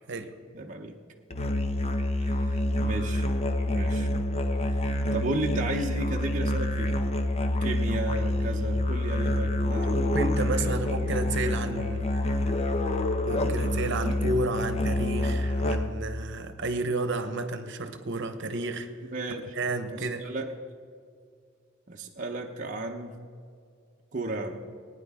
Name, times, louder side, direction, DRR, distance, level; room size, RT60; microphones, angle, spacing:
voice 1, 0.5-0.9 2.2-3.3 3.7-4.1 5.1-6.9 7.6-10.0 10.6-10.7 19.1-19.5 19.9-20.5 21.9-23.1 24.1-24.6, right 2 dB, 40° right, 0 dB, 0.8 m, -34 dB
Musical instrument, 1.3-16.0, left 1 dB, 30° left, 0.7 m, -27 dB
voice 2, 9.8-12.1 13.3-18.9 19.5-20.2, right 2 dB, 60° right, 9 dB, 1.0 m, -31 dB
19.0 x 9.8 x 3.6 m, 2.2 s
head